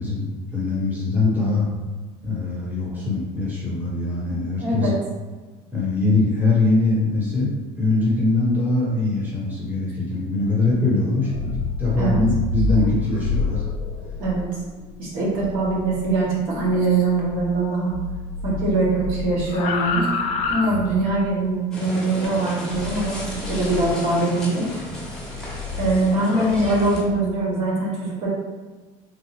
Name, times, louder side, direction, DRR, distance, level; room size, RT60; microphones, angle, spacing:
voice 1, 0.0-1.6 2.2-4.9 5.7-13.6, left 3 dB, 10° right, -7 dB, 1.3 m, -22 dB
voice 2, 4.6-5.0 12.0-12.2 14.2-14.5 15.0-17.9 18.4-20.1 20.5-24.7 25.8-28.3, right 2 dB, 75° right, -5 dB, 1.1 m, -22 dB
sound 1, 11.2-17.7 17.9-21.3 22.7-24.0 24.6-27.2, left 3 dB, 50° left, 0.4 m, -29 dB
sound 2, 21.7-27.0, equal, 5° left, 1.1 m, -35 dB
3.3 x 2.4 x 3.2 m, 1.3 s
cardioid pair, 115°, 15 cm